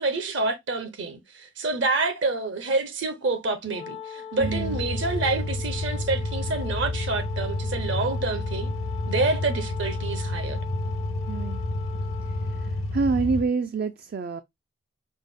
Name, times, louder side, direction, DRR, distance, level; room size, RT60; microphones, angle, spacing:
voice 1, 0.0-8.7 9.1-10.6, right 3 dB, 65° right, 0.7 m, -28 dB
Wind instrument woodwind instrument, 3.7-12.9, left 7 dB, 25° left, 0.4 m, -41 dB
sound 1, 4.4-13.4, left 2 dB, 80° left, 0.7 m, -30 dB
voice 2, 4.4-4.8 11.3-11.6 12.2-14.4, right 4 dB, 50° right, 0.3 m, -27 dB
5.1 x 2.1 x 3.5 m
head